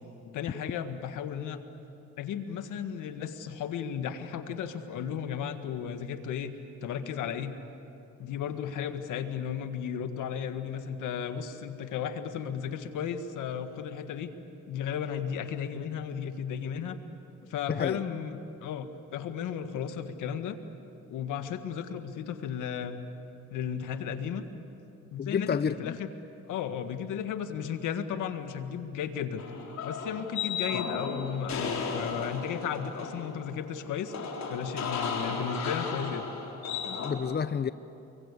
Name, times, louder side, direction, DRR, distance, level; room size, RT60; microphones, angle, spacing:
voice 1, 0.3-1.6 2.2-6.5 6.8-7.5 8.2-14.3 14.7-17.0 17.5-20.6 21.1-23.0 23.5-24.5 25.1-26.1 26.5-29.4 29.8-34.1 34.5-36.3, left 8 dB, 85° left, 8 dB, 1.8 m, -34 dB
voice 2, 17.7-18.0 25.2-26.0 36.8-37.7, left 7 dB, 35° left, 14 dB, 0.7 m, -30 dB
sound 1, 29.4-37.1, left 5 dB, 65° left, 4.3 m, -35 dB
29.0 x 23.5 x 8.4 m, 2.7 s
cardioid pair, 90°, 30 cm